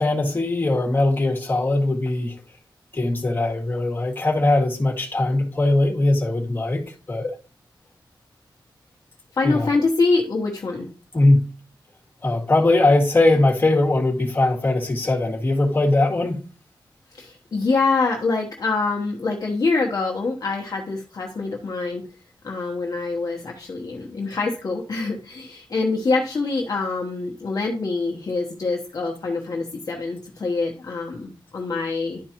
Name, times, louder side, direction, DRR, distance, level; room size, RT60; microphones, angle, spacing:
voice 1, 0.0-2.4 2.9-6.8 7.1-7.3 9.4-9.7 11.1-11.5 12.2-16.4, left 2 dB, 25° left, 1.9 m, -20 dB
voice 2, 9.3-10.9 17.1-22.0 22.4-32.2, left 3 dB, 45° left, 1.0 m, -25 dB
11.5 x 4.5 x 2.9 m
wide cardioid pair, 180°, 8 cm